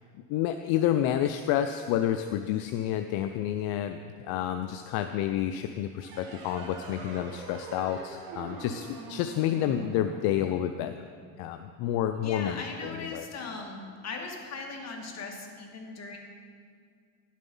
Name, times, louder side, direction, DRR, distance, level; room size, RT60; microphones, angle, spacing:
voice 1, 0.3-11.0 11.4-13.2, left 11 dB, 70° left, 8 dB, 0.6 m, -29 dB
sound 1, 6.0-11.2, right 3 dB, 60° right, 2.1 m, -43 dB
voice 2, 12.2-16.2, left 4 dB, 40° left, 1 dB, 1.9 m, -39 dB
11.0 x 7.5 x 5.5 m, 2.1 s
cardioid pair, 110°, 39 cm